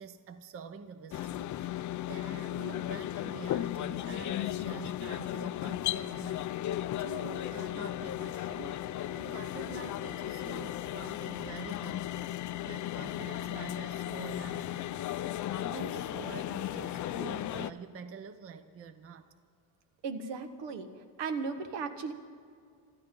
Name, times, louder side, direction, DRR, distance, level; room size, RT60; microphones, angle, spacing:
voice 1, 0.0-6.5 7.0-19.3, right 6 dB, 30° right, 10 dB, 0.7 m, -47 dB
sound 1, 1.1-17.7, left 13 dB, 45° left, 0.5 m, -35 dB
voice 2, 20.0-20.9 21.2-22.1, right 5 dB, 80° right, 7 dB, 1.6 m, -36 dB
25.0 x 13.5 x 3.8 m, 2.3 s
cardioid pair, 145°, 43 cm